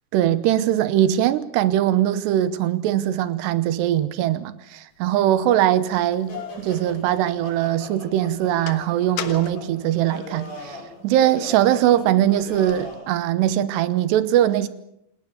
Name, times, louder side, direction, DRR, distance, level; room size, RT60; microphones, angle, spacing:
voice 1, 0.1-10.8 11.0-14.7, right 12 dB, 75° right, 3.0 m, -21 dB
sound 1, 5.1-5.2 5.9-7.7 8.1-10.7 11.2-13.0, left 10 dB, 65° left, 2.9 m, -38 dB
sound 2, 6.3-13.1, left 1 dB, 40° left, 7.1 m, -39 dB
28.0 x 18.5 x 7.1 m
omnidirectional pair, 5.1 m